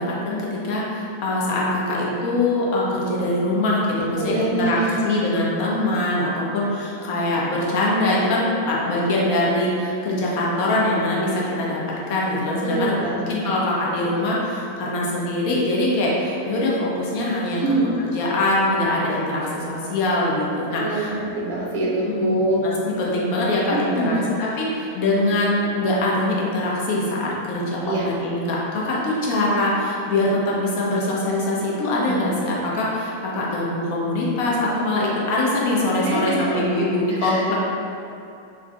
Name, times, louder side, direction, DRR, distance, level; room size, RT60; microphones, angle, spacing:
voice 1, 0.0-4.8 5.0-11.8 12.1-17.6 18.1-21.1 22.0-37.5, left 1 dB, 45° left, -4 dB, 0.5 m, -23 dB
voice 2, 4.2-5.0 12.6-13.5 17.5-17.9 20.7-22.6 23.7-24.3 27.8-28.0 32.0-32.3 36.0-36.5 37.2-37.4, right 2 dB, 50° right, -4 dB, 0.6 m, -25 dB
3.3 x 2.0 x 2.4 m, 2.6 s
figure-of-eight pair, 90°, 0 cm